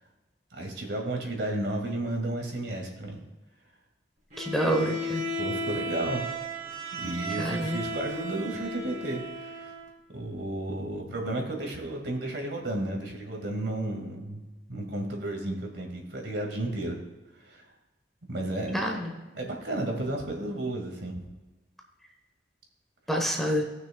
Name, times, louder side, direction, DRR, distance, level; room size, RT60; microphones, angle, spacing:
voice 1, 0.5-3.2 5.4-6.2 6.9-9.7 10.1-14.4 14.7-17.0 17.4-17.6 18.3-19.0 19.3-21.3, right 1 dB, 70° right, 1 dB, 1.9 m, -33 dB
Bowed string instrument, 4.3-9.9, equal, 45° right, 2.8 m, -34 dB
voice 2, 4.4-5.3 7.4-7.8 18.7-19.1 23.1-23.6, equal, ahead, 1 dB, 0.9 m, -27 dB
17.5 x 6.1 x 2.3 m, 1.2 s
head